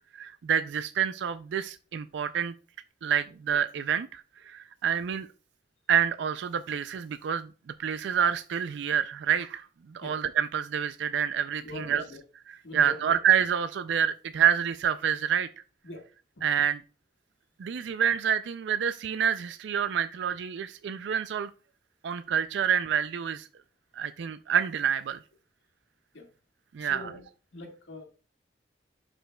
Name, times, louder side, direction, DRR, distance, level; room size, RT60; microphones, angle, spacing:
voice 1, 0.1-2.5 3.0-5.3 5.9-7.5 7.8-12.0 12.7-15.5 16.4-16.8 17.6-21.5 22.0-23.5 23.9-25.2 26.7-27.1, right 8 dB, 80° right, 12 dB, 0.4 m, -27 dB
voice 2, 11.6-12.2 12.6-13.0 15.8-16.0 16.3-16.4 26.1-26.3 26.8-27.2 27.5-28.0, left 2 dB, 85° left, 3 dB, 1.7 m, -43 dB
11.0 x 5.1 x 2.2 m, 0.36 s
head